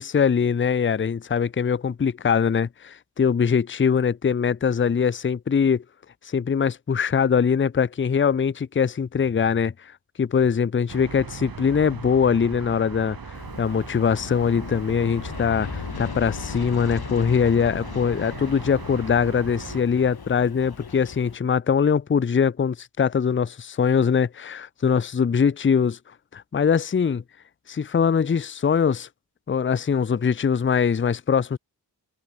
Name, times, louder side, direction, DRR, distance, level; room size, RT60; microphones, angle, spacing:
voice 1, 0.0-5.8 6.2-9.7 10.2-26.0 26.3-27.2 27.7-29.1 29.5-31.6, left 6 dB, 30° left, 0.5 m, -22 dB
sound 1, 10.9-19.8, right 5 dB, 60° right, 2.3 m, -39 dB
Aircraft, 13.3-21.4, left 5 dB, 65° left, 2.9 m, -37 dB
wide cardioid pair, 100°, 40 cm